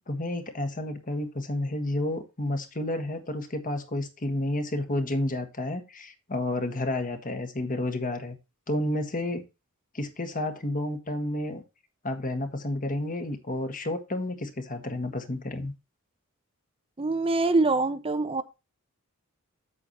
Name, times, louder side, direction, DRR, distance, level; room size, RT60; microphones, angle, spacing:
voice 1, 0.1-8.3 8.7-9.4 9.9-11.6 12.0-15.7, left 1 dB, 40° left, 1.6 m, -31 dB
voice 2, 17.0-18.4, right 3 dB, 25° right, 0.7 m, -24 dB
8.4 x 8.1 x 2.9 m
head